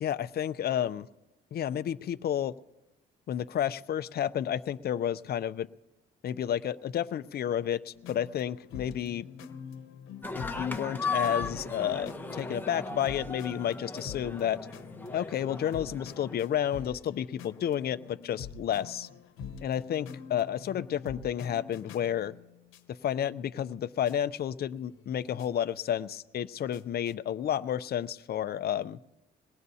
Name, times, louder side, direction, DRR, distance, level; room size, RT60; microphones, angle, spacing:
voice 1, 0.0-1.1 1.5-2.5 3.3-5.7 6.2-9.3 10.3-14.6 15.1-19.1 19.6-22.3 23.0-29.0, left 10 dB, 50° left, 13 dB, 0.5 m, -31 dB
sound 1, 7.9-22.9 23.7-23.8 24.1-24.2 24.7-27.1, left 6 dB, 90° left, 1.0 m, -46 dB
sound 2, 10.2-16.9, left 4 dB, 10° left, 1.2 m, -37 dB
22.5 x 18.5 x 2.8 m, 0.95 s
cardioid pair, 90°, 20 cm